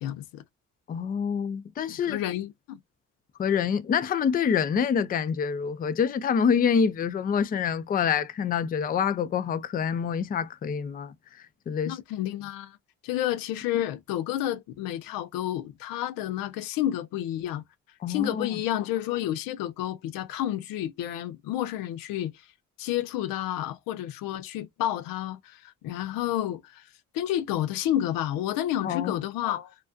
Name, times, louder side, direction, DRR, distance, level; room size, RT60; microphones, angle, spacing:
voice 1, 0.0-0.4 1.9-2.8 11.9-12.8 13.0-17.6 18.1-22.3 22.8-26.9 27.1-29.7, left 12 dB, 85° left, 0.5 m, -30 dB
voice 2, 0.9-2.2 3.4-11.1 11.7-12.0 18.0-18.5 28.8-29.2, left 7 dB, 30° left, 0.3 m, -26 dB
2.3 x 2.3 x 2.4 m
cardioid pair, 75°, 33 cm